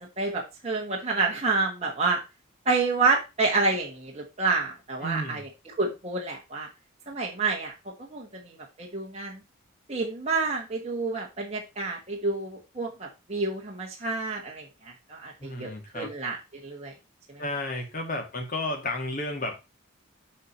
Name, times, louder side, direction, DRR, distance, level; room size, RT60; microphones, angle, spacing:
voice 1, 0.0-2.2 2.6-5.5 5.8-6.7 7.1-7.7 8.1-9.4 9.9-14.7 15.1-16.4 16.6-16.9 17.3-17.4, right 3 dB, 30° right, -1 dB, 1.4 m, -28 dB
voice 2, 5.0-5.5 15.4-16.1 17.4-19.5, left 1 dB, 40° left, 2 dB, 2.2 m, -32 dB
7.5 x 4.3 x 5.1 m, 0.26 s
head